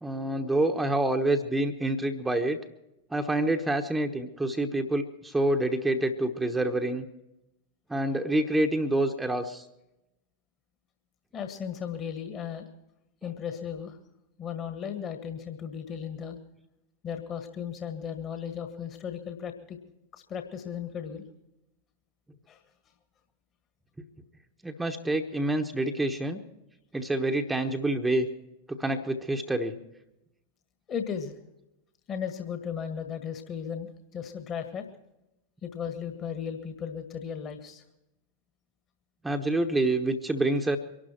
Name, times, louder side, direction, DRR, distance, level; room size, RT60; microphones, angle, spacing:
voice 1, 0.0-2.6 3.1-7.1 7.9-9.6 24.6-26.4 26.9-28.3 28.7-29.8 39.2-40.8, right 1 dB, 5° right, 4 dB, 1.1 m, -27 dB
voice 2, 11.3-12.7 13.2-14.0 14.4-16.4 17.0-19.8 20.1-21.2 22.5-22.6 30.9-31.3 32.1-34.9 35.6-37.8, left 7 dB, 30° left, 6 dB, 1.7 m, -36 dB
24.0 x 12.5 x 4.5 m, 0.91 s
figure-of-eight pair, 90°, 0 cm